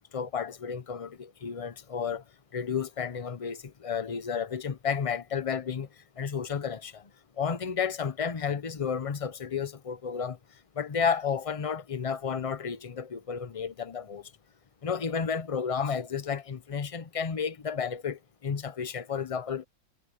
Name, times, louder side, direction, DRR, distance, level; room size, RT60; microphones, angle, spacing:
voice 1, 0.1-2.2 2.5-5.9 6.2-7.1 7.4-10.4 10.8-14.3 14.8-19.7, left 6 dB, 40° left, 0.5 m, -32 dB
omnidirectional pair, 1.6 m